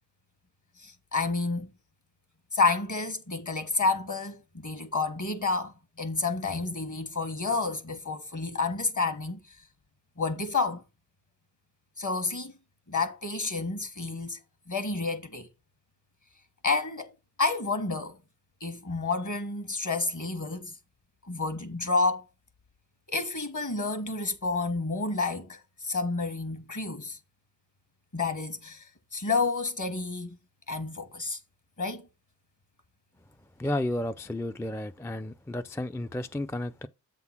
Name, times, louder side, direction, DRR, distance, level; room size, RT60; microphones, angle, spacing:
voice 1, 0.8-1.7 2.5-9.4 10.2-10.8 12.0-12.5 12.9-14.4 14.7-15.5 16.6-17.1 17.4-18.2 18.6-20.8 21.3-22.2 23.1-27.2 28.1-30.4 30.7-31.4 31.8-32.1, left 3 dB, 45° left, 1.4 m, -30 dB
voice 2, 33.6-36.9, left 1 dB, 5° left, 0.3 m, -32 dB
8.0 x 3.8 x 5.7 m
wide cardioid pair, 55°, 42 cm